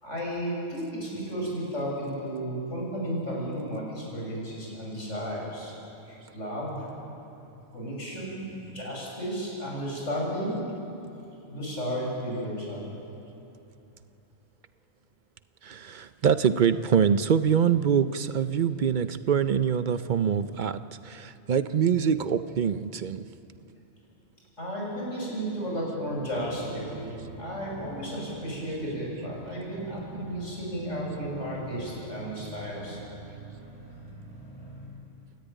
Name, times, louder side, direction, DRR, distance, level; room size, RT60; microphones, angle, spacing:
voice 1, 0.0-5.7 6.1-6.9 7.7-10.6 11.5-12.9 24.6-33.0, equal, 70° left, -3 dB, 6.9 m, -33 dB
voice 2, 15.6-23.2, right 7 dB, 50° right, 12 dB, 0.6 m, -24 dB
sound 1, 25.6-34.9, right 1 dB, 15° right, 6.7 m, -45 dB
29.0 x 13.5 x 9.1 m, 2.9 s
omnidirectional pair, 1.3 m